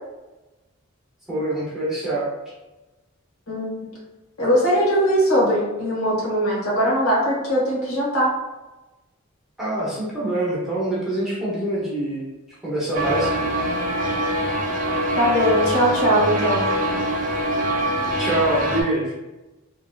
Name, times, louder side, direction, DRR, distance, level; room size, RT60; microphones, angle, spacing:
voice 1, 1.3-2.2 9.6-12.2 12.6-13.3 18.2-19.1, right 1 dB, ahead, -9 dB, 0.8 m, -24 dB
voice 2, 3.5-3.9 4.4-8.3 15.2-16.6, equal, 80° left, -6 dB, 1.2 m, -20 dB
sound 1, 12.9-18.8, right 1 dB, 35° right, 0.4 m, -23 dB
3.0 x 2.7 x 2.3 m, 1.1 s
head